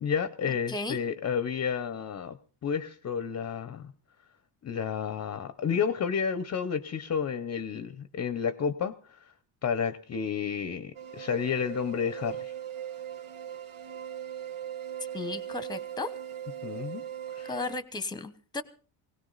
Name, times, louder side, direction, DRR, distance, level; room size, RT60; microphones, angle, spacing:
voice 1, 0.0-2.4 2.6-3.8 4.6-9.2 9.6-12.5 16.6-17.0 17.3-17.6, left 7 dB, 35° left, 12 dB, 0.7 m, -31 dB
voice 2, 0.7-1.0 15.1-16.1 17.4-18.6, left 3 dB, 10° left, 13 dB, 0.9 m, -35 dB
sound 1, 11.0-17.8, right 10 dB, 90° right, 1.8 m, -39 dB
19.5 x 18.0 x 4.0 m, 0.39 s
cardioid pair, 170°, 49 cm